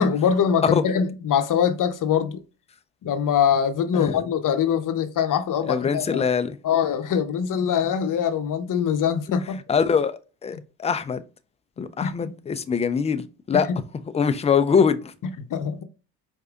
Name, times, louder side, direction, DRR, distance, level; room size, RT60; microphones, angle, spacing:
voice 1, 0.0-2.4 3.0-6.3 6.6-9.6 10.5-10.6 12.0-12.3 13.5-13.7 15.2-15.8, left 7 dB, 45° left, 0.8 m, -23 dB
voice 2, 5.6-6.6 9.7-11.2 11.8-13.7 14.1-15.1, left 6 dB, 15° left, 0.4 m, -23 dB
4.8 x 2.7 x 2.3 m
hypercardioid pair, 65°, 46 cm